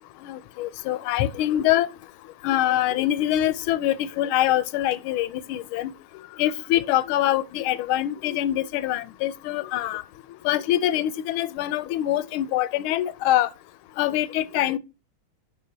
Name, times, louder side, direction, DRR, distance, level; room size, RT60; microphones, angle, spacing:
voice 1, 0.3-1.9 2.4-5.9 6.4-10.0 10.4-13.5 14.0-14.8, left 13 dB, 80° left, 1.4 m, -24 dB
7.3 x 5.3 x 3.8 m
omnidirectional pair, 2.3 m